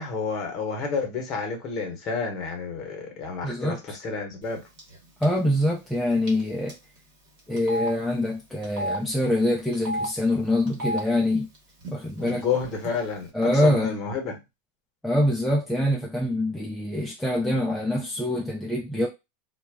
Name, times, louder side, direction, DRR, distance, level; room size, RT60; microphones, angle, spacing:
voice 1, 0.0-4.6 12.2-14.4, left 5 dB, 30° left, 0.9 m, -30 dB
voice 2, 3.4-4.0 5.2-6.8 7.5-11.5 11.9-12.5 13.3-13.9 15.0-19.1, left 1 dB, ahead, 0.4 m, -25 dB
Telephone, 4.8-5.0 5.2-5.4 6.3-6.4 6.7-6.8 7.6-7.9 8.6-9.0 9.7-10.1 10.7-11.0 11.8-11.9 12.2-12.9, right 1 dB, 45° right, 1.2 m, -30 dB
2.2 x 2.0 x 3.3 m
supercardioid pair, 155°, 0 cm